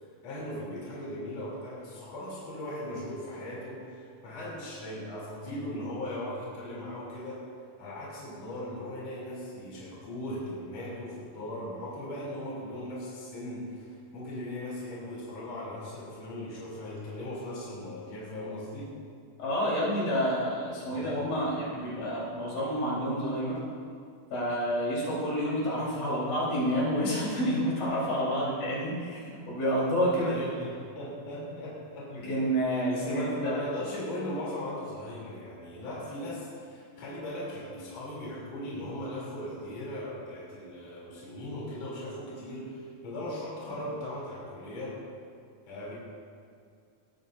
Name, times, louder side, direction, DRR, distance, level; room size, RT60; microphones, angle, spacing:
voice 1, 0.2-7.4 7.8-18.9 20.9-21.1 30.2-32.5 32.9-45.0 45.7-45.9, left 1 dB, 50° left, -7 dB, 4.4 m, -38 dB
voice 2, 19.4-23.6 24.3-30.3 32.2-33.6, equal, 85° left, -7 dB, 5.9 m, -29 dB
20.5 x 13.5 x 2.7 m, 2.3 s
omnidirectional pair, 3.8 m